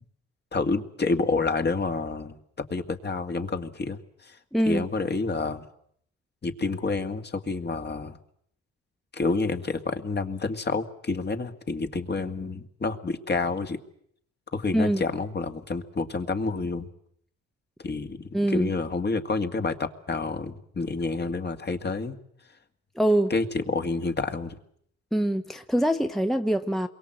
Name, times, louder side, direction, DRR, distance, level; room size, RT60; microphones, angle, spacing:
voice 1, 0.5-2.4 2.7-4.4 4.6-5.6 6.4-8.2 9.1-13.8 14.5-16.9 17.8-22.2 23.3-24.6, left 3 dB, 35° left, 2.1 m, -29 dB
voice 2, 4.5-4.9 14.7-15.0 18.3-18.7 23.0-23.3 25.1-26.9, right 1 dB, ahead, 1.1 m, -24 dB
28.0 x 23.0 x 7.9 m
cardioid pair, 90°, 30 cm